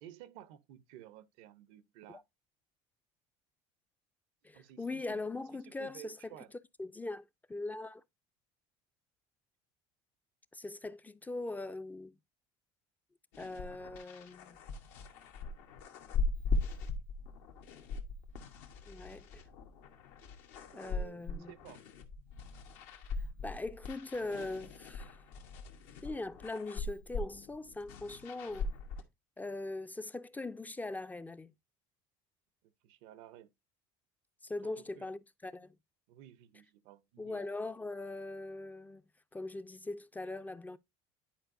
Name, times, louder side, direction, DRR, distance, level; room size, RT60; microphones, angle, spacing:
voice 1, 0.0-2.2 4.5-5.2 5.5-6.5 20.7-21.8 32.8-33.5 34.6-35.1 36.1-37.5, right 12 dB, 80° right, 0.6 m, -54 dB
voice 2, 4.4-6.2 6.8-8.0 10.5-12.1 13.4-14.6 18.9-19.4 20.7-21.5 23.4-25.2 26.0-28.7 29.4-31.5 34.4-35.7 37.2-39.0 39.3-40.8, left 2 dB, 10° left, 0.3 m, -41 dB
sound 1, 13.3-29.0, left 3 dB, 80° left, 1.2 m, -40 dB
10.0 x 4.6 x 2.6 m
supercardioid pair, 105°, 14 cm